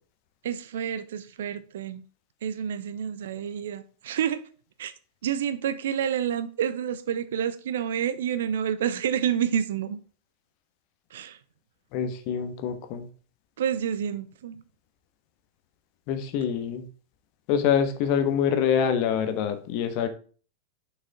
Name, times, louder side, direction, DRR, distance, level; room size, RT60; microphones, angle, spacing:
voice 1, 0.4-2.0 2.4-4.5 4.8-4.9 5.2-10.0 11.1-11.4 13.6-14.6, right 9 dB, 60° right, 0.7 m, -29 dB
voice 2, 11.9-13.1 16.1-16.9 17.5-20.1, left 8 dB, 45° left, 1.3 m, -25 dB
6.8 x 5.7 x 3.5 m
figure-of-eight pair, 90°, 0 cm